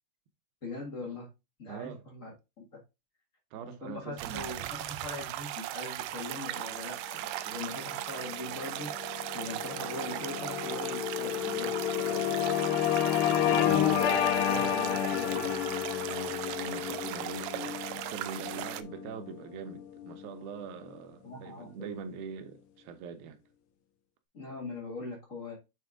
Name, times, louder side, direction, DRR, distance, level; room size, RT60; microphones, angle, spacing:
voice 1, 0.6-1.3 1.6-2.8 3.8-12.4 13.2-15.5 21.2-21.9 24.3-25.5, left 2 dB, 55° left, 0.9 m, -41 dB
voice 2, 1.7-2.0 3.5-4.8 12.9-13.8 16.0-23.4, right 6 dB, 70° right, 2.7 m, -43 dB
sound 1, 4.2-18.8, right 14 dB, 90° right, 2.0 m, -38 dB
sound 2, 7.9-20.5, left 10 dB, 75° left, 2.4 m, -31 dB
7.9 x 4.0 x 3.5 m
omnidirectional pair, 4.6 m